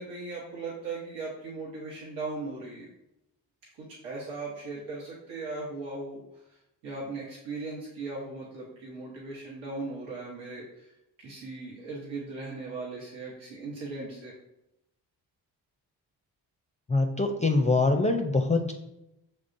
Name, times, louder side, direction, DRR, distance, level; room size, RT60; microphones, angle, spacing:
voice 1, 0.0-2.9 3.8-6.2 6.8-10.9 11.2-14.3, right 3 dB, 75° right, -5 dB, 1.1 m, -38 dB
voice 2, 16.9-18.7, left 3 dB, 15° left, 4 dB, 0.4 m, -24 dB
5.3 x 3.3 x 2.6 m, 0.88 s
supercardioid pair, 45°, 47 cm